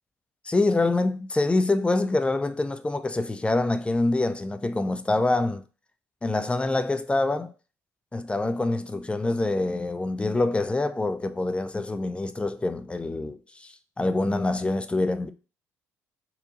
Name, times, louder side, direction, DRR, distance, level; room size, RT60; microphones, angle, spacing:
voice 1, 0.4-5.6 6.2-7.5 8.1-15.3, left 2 dB, 15° left, 0.4 m, -25 dB
4.3 x 2.8 x 2.4 m
hypercardioid pair, 55°, 8 cm